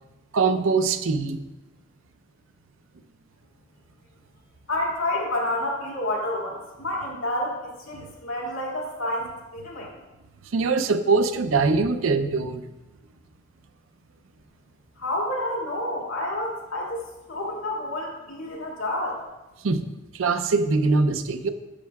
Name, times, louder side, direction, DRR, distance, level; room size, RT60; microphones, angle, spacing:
voice 1, 0.3-1.4 10.5-12.7 19.6-19.8 20.1-21.5, right 4 dB, 80° right, 10 dB, 0.5 m, -22 dB
voice 2, 4.7-9.9 15.0-17.0 17.3-19.2, left 1 dB, 85° left, -3 dB, 2.2 m, -29 dB
10.0 x 7.2 x 2.3 m, 1.1 s
head